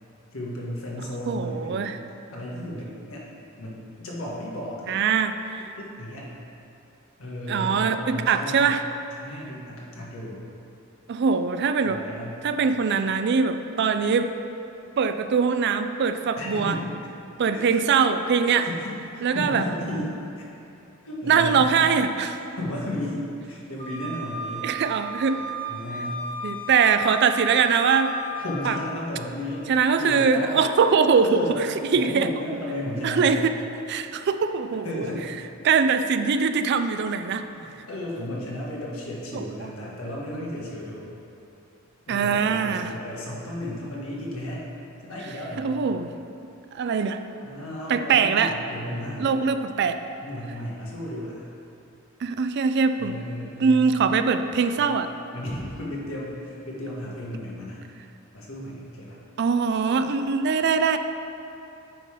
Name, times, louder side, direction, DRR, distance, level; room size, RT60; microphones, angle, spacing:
voice 1, 0.3-2.0 2.3-3.3 3.6-5.0 5.8-6.3 7.2-8.7 9.2-10.5 11.8-12.4 16.4-16.9 17.5-17.7 18.5-20.5 21.0-21.7 22.3-24.7 25.7-26.2 28.4-29.7 30.0-30.6 31.2-31.6 31.9-33.4 34.8-35.3 37.5-41.1 42.1-44.6 45.0-45.8 47.4-49.4 50.2-51.5 53.0-53.8 54.8-54.9 55.3-57.8 58.3-59.2, left 1 dB, 85° left, -4 dB, 1.5 m, -34 dB
voice 2, 1.3-2.0 4.9-5.7 7.5-8.8 11.1-12.0 12.4-14.3 15.0-16.8 17.4-18.7 19.2-19.6 21.3-22.3 24.6-25.6 26.4-28.1 28.6-28.8 29.7-31.7 31.9-32.3 33.0-33.5 33.9-35.0 35.6-37.5 39.3-39.4 42.1-42.9 45.6-46.1 46.7-47.2 47.9-48.5 49.2-50.0 52.2-53.1 53.6-55.1 59.4-61.0, right 5 dB, 55° right, 9 dB, 0.4 m, -22 dB
Wind instrument woodwind instrument, 23.8-28.5, equal, 25° left, 1.8 m, -34 dB
9.0 x 3.9 x 4.9 m, 2.7 s
head